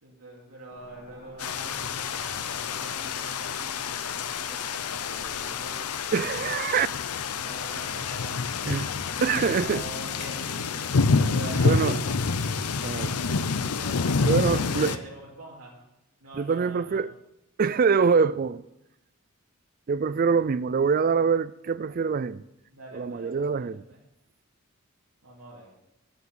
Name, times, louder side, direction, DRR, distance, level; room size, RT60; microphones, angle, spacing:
voice 1, 0.0-6.4 7.3-8.4 9.3-12.0 12.9-13.4 13.7-15.8 16.2-17.0 20.1-20.4 22.7-24.0 25.2-25.7, right 2 dB, 85° right, 2.7 m, -44 dB
sound 1, 0.7-10.4, left 2 dB, 60° left, 2.9 m, -51 dB
sound 2, 1.4-15.0, left 4 dB, 90° left, 0.7 m, -28 dB
voice 2, 6.1-6.9 8.6-8.9 9.2-9.8 11.6-12.0 12.8-13.2 14.3-15.0 16.3-17.1 17.6-18.6 19.9-22.4 22.9-23.8, right 5 dB, 40° right, 0.3 m, -24 dB
8.5 x 7.9 x 9.0 m
head